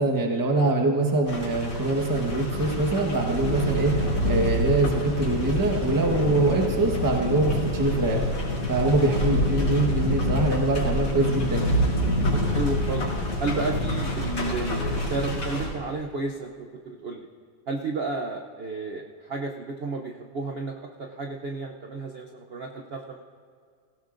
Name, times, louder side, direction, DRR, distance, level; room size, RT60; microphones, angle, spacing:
voice 1, 0.0-8.2 8.7-11.7, right 2 dB, 15° right, 1 dB, 1.0 m, -24 dB
sound 1, 1.3-15.7, left 1 dB, 60° left, 3.7 m, -27 dB
voice 2, 12.3-13.1 13.4-16.5 16.8-17.3 17.7-23.2, right 3 dB, 75° right, 2 dB, 0.5 m, -32 dB
18.0 x 16.5 x 2.6 m, 2.1 s
omnidirectional pair, 2.1 m